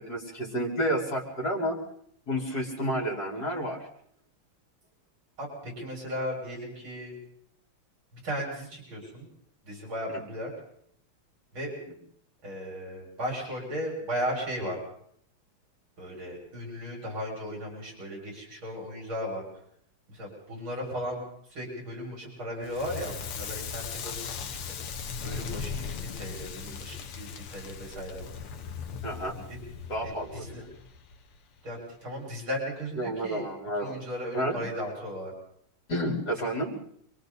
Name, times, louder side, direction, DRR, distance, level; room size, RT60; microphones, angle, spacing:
voice 1, 0.0-1.8 2.3-3.9 10.1-10.2 29.0-29.4 29.9-30.6 33.0-34.0 34.3-34.6 35.9-36.7, equal, 40° left, -2 dB, 4.9 m, -30 dB
voice 2, 5.4-7.1 8.1-9.3 9.6-10.5 11.5-11.7 12.4-14.8 16.0-19.4 20.1-21.2 21.5-24.6 25.2-28.2 29.5-29.6 30.0-30.6 31.6-33.5 33.8-35.3, equal, 65° right, -2 dB, 7.4 m, -36 dB
Crackle, 22.6-31.6, left 6 dB, 85° left, 2.1 m, -38 dB
28.5 x 23.5 x 4.1 m, 0.67 s
omnidirectional pair, 2.4 m